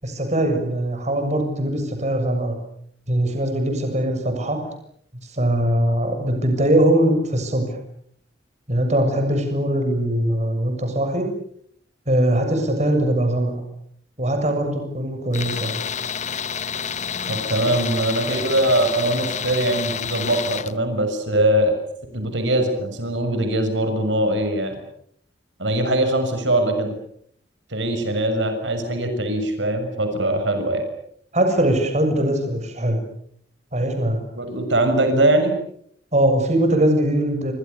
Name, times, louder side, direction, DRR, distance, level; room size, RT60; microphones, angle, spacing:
voice 1, 0.0-2.6 3.1-4.6 5.2-7.8 8.7-11.3 12.1-13.6 14.2-15.8 31.3-33.0 33.7-34.2 36.1-37.5, right 1 dB, 40° right, 5 dB, 7.3 m, -21 dB
Tools, 15.3-20.7, left 7 dB, 40° left, 1.1 m, -29 dB
voice 2, 17.3-21.7 22.1-24.8 25.6-26.9 27.7-30.8 34.4-35.5, right 1 dB, 75° right, 7 dB, 6.6 m, -21 dB
30.0 x 26.5 x 7.0 m, 0.68 s
head